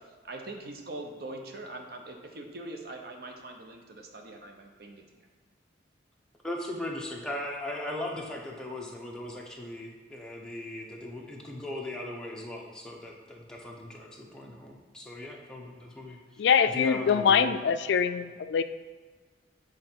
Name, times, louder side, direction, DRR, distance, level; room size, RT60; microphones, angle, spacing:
voice 1, 0.0-5.3, right 2 dB, 60° right, 0.8 m, -42 dB
voice 2, 6.4-17.5, left 1 dB, 5° left, 0.8 m, -38 dB
voice 3, 16.4-18.6, left 7 dB, 75° left, 0.3 m, -24 dB
7.6 x 3.8 x 4.5 m
head